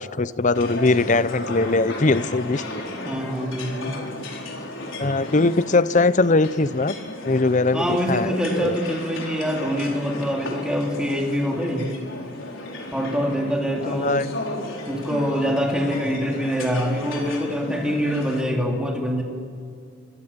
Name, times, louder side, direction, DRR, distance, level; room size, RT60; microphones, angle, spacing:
voice 1, 0.0-2.6 5.0-7.0 7.3-8.8 13.8-14.3, left 3 dB, 35° left, 16 dB, 0.6 m, -21 dB
sound 1, 0.5-18.4, left 1 dB, 70° left, 4.8 m, -34 dB
voice 2, 2.9-4.0 7.7-11.9 12.9-14.2 14.9-19.2, equal, 5° right, 0 dB, 3.4 m, -25 dB
29.5 x 25.5 x 7.4 m, 2.4 s
head